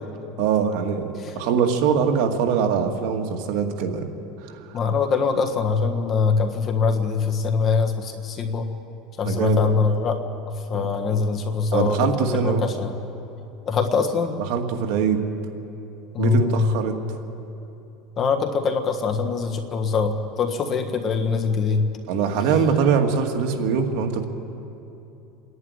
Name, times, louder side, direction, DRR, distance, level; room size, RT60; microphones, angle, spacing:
voice 1, 0.4-4.1 4.5-4.7 9.2-9.7 10.7-11.2 11.7-12.6 14.5-15.2 16.2-17.0 22.1-24.2, right 6 dB, 65° right, 3 dB, 2.0 m, -23 dB
voice 2, 4.7-8.7 9.2-10.2 10.7-12.1 12.4-12.9 13.7-14.4 16.1-16.7 18.2-21.9, left 5 dB, 30° left, 5 dB, 1.5 m, -23 dB
27.5 x 11.0 x 9.7 m, 2.8 s
supercardioid pair, 145°, 0 cm